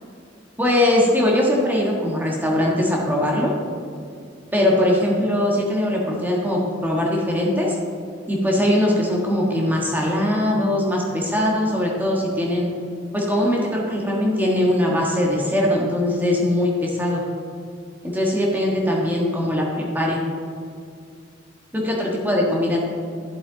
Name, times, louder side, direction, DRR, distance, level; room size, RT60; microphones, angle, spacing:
voice 1, 0.6-3.5 4.5-7.8 8.3-12.7 13.1-17.2 18.0-20.2 21.7-22.8, left 1 dB, 10° right, -3 dB, 1.5 m, -21 dB
12.0 x 7.6 x 3.9 m, 2.3 s
head